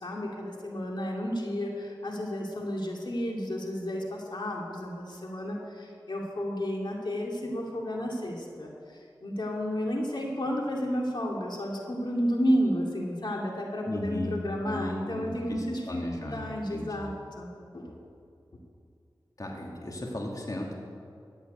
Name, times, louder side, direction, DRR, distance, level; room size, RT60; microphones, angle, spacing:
voice 1, 0.0-5.6 6.1-8.7 9.2-15.8 16.1-17.5 17.7-17.9, equal, 65° left, -1 dB, 2.5 m, -31 dB
voice 2, 13.9-14.4 14.6-16.4 16.7-17.1 19.4-20.7, left 1 dB, 45° left, -1 dB, 2.4 m, -35 dB
14.5 x 9.2 x 9.4 m, 2.5 s
wide cardioid pair, 50°, 8 cm